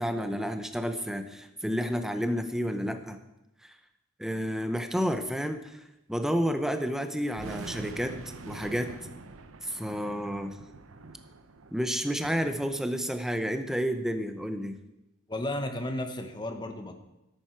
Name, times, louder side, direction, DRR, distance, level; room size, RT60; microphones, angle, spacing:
voice 1, 0.0-3.2 3.6-3.7 4.2-5.8 6.1-8.1 8.5-8.9 9.6-10.6 11.7-14.8, equal, ahead, 7 dB, 0.7 m, -30 dB
sound 1, 6.7-6.8 7.4-12.8, right 3 dB, 80° right, 0.8 m, -45 dB
voice 2, 15.3-16.9, left 1 dB, 20° left, 6 dB, 1.1 m, -33 dB
13.5 x 10.5 x 4.6 m, 0.92 s
head